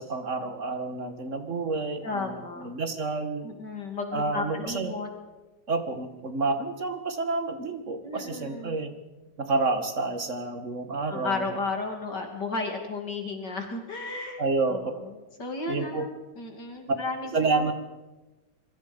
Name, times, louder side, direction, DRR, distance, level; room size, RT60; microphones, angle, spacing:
voice 1, 0.0-3.5 4.1-4.9 5.7-8.9 9.4-11.5 14.4-14.9 15.7-16.1 17.3-17.7, right 3 dB, 35° right, 8 dB, 2.2 m, -29 dB
voice 2, 2.0-2.7 3.4-5.1 8.0-8.8 11.1-14.4 14.7-17.7, left 3 dB, 55° left, 3 dB, 3.3 m, -34 dB
26.5 x 23.5 x 5.4 m, 1.1 s
omnidirectional pair, 2.2 m